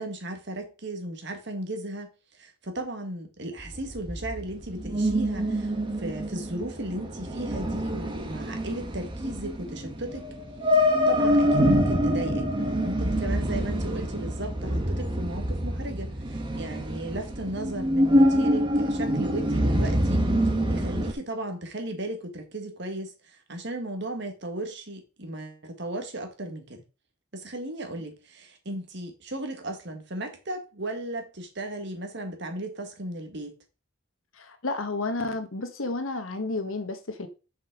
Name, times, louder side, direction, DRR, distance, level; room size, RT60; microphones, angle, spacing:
voice 1, 0.0-2.1 2.4-10.3 10.7-26.8 27.3-33.6, right 1 dB, 55° right, 1.8 m, -36 dB
Ambient Drone Squeak Sounds, 3.6-21.1, equal, 25° right, 1.2 m, -26 dB
voice 2, 34.4-37.3, left 2 dB, 80° left, 1.3 m, -31 dB
6.4 x 5.5 x 4.9 m
head